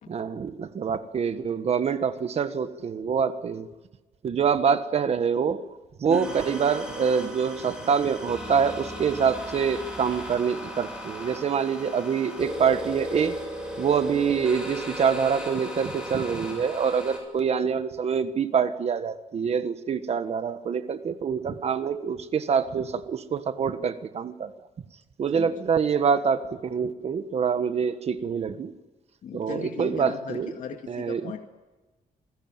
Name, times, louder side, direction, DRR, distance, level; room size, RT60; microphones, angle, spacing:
voice 1, 0.1-3.7 4.2-5.6 6.0-13.4 13.8-24.5 25.2-28.7 29.3-30.5 30.9-31.3, right 6 dB, 45° right, 10 dB, 1.4 m, -25 dB
sound 1, 6.1-17.2, equal, 5° right, 7.3 m, -37 dB
voice 2, 29.2-31.4, left 8 dB, 65° left, 3 dB, 2.2 m, -38 dB
28.0 x 20.5 x 9.1 m, 1.1 s
wide cardioid pair, 165°, 14 cm